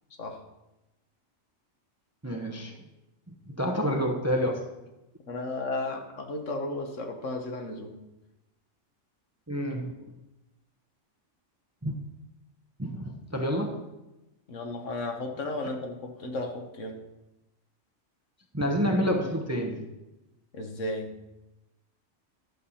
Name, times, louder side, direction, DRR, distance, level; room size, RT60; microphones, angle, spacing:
voice 1, 2.2-2.8 3.3-4.7 9.5-10.1 11.8-11.9 12.8-13.9 18.5-19.9, equal, 15° right, 3 dB, 0.7 m, -29 dB
voice 2, 5.3-8.0 14.5-17.0 20.5-21.1, left 2 dB, 65° left, 4 dB, 1.5 m, -34 dB
11.5 x 7.3 x 4.2 m, 0.97 s
omnidirectional pair, 1.4 m